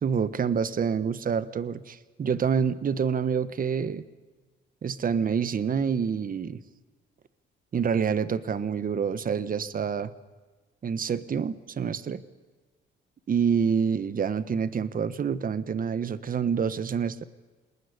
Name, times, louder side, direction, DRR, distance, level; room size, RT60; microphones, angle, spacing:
voice 1, 0.0-4.0 4.8-6.6 7.7-10.1 10.8-12.2 13.3-17.2, right 6 dB, 45° right, 14 dB, 1.3 m, -27 dB
28.0 x 20.0 x 9.9 m, 1.3 s
cardioid pair, 90°, 20 cm